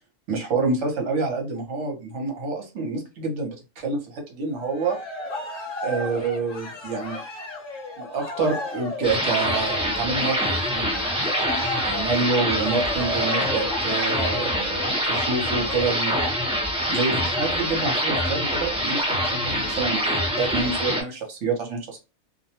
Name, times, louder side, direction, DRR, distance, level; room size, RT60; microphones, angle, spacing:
voice 1, 0.3-5.0 5.8-7.2 8.0-10.9 11.9-16.3 16.9-22.0, right 4 dB, 70° right, 3 dB, 1.1 m, -27 dB
Cheering, 4.5-16.3, left 2 dB, 25° left, 0.9 m, -34 dB
sound 1, 9.0-21.0, equal, 5° right, 0.5 m, -25 dB
2.4 x 2.2 x 2.8 m, 0.28 s
omnidirectional pair, 1.3 m